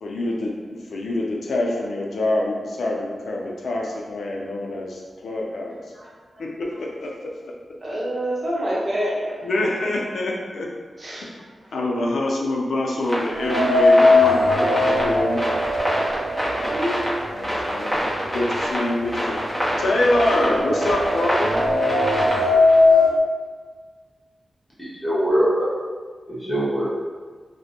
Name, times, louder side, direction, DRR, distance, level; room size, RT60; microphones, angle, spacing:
voice 1, 0.0-5.8 6.4-7.3 9.4-10.7 11.2-11.4 11.7-15.4 17.3-19.4 19.8-21.5, left 1 dB, 85° left, -1 dB, 0.4 m, -25 dB
voice 2, 5.7-6.4 7.8-9.4 11.0-11.5 16.5-17.0 17.2-17.4, equal, 45° right, -6 dB, 0.8 m, -28 dB
sound 1, 13.0-22.8, equal, 10° right, 0.9 m, -27 dB
sound 2, 13.4-17.4 17.8-17.9 18.8-18.9 19.3-23.2, left 2 dB, 65° right, 0.4 m, -19 dB
voice 3, 24.8-25.7 26.3-26.9, right 1 dB, 15° left, -11 dB, 1.1 m, -22 dB
2.5 x 2.1 x 2.7 m, 1.5 s
cardioid pair, 70°, 0 cm